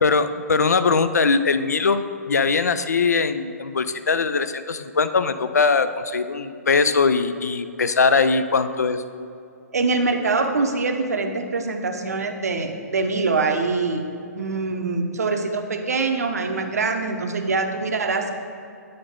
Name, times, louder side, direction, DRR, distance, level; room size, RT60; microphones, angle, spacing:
voice 1, 0.0-9.0, left 4 dB, 75° left, 11 dB, 0.4 m, -21 dB
voice 2, 9.7-14.0 14.4-18.3, right 3 dB, 65° right, 5 dB, 0.7 m, -24 dB
8.6 x 5.2 x 3.6 m, 2.5 s
figure-of-eight pair, 120°, 9 cm